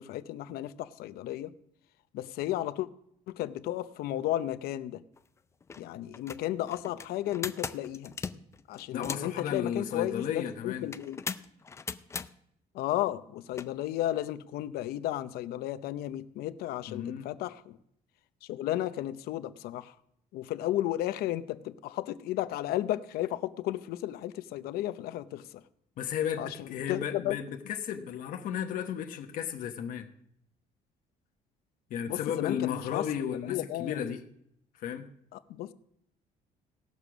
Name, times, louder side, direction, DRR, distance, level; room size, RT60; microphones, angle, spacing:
voice 1, 0.0-1.5 2.1-2.9 3.3-5.0 5.8-8.1 8.7-11.2 12.7-17.8 18.5-19.9 20.3-25.6 26.4-27.4 32.1-33.0 33.5-34.0 35.3-35.7, left 14 dB, 85° left, 0.7 m, -33 dB
sound 1, 5.2-5.3 5.6-5.8 6.1-9.4 10.9-12.3 13.5-13.7, left 5 dB, 20° left, 0.4 m, -38 dB
voice 2, 8.9-10.9 16.9-17.3 26.0-30.1 31.9-34.2 34.8-35.1, left 8 dB, 60° left, 1.2 m, -34 dB
17.5 x 6.8 x 6.2 m
cardioid pair, 160°, 16 cm